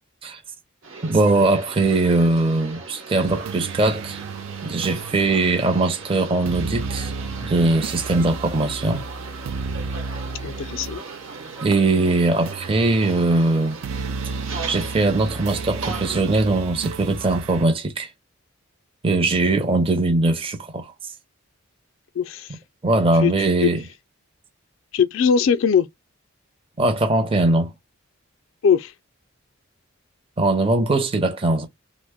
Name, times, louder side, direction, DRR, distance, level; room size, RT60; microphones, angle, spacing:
sound 1, 0.8-16.2, right 4 dB, 65° right, 0.9 m, -38 dB
voice 1, 1.0-4.2 4.6-7.1 7.4-9.0 11.6-13.8 14.7-18.1 19.0-20.9 22.8-23.8 26.8-27.7 30.4-31.7, right 2 dB, 25° right, 0.5 m, -20 dB
sound 2, 3.3-17.7, right 4 dB, 85° right, 0.4 m, -33 dB
voice 2, 10.4-11.0 22.2-22.6 23.2-23.3 23.6-23.7 24.9-25.9 28.6-28.9, left 7 dB, 65° left, 0.3 m, -20 dB
2.9 x 2.0 x 3.4 m
head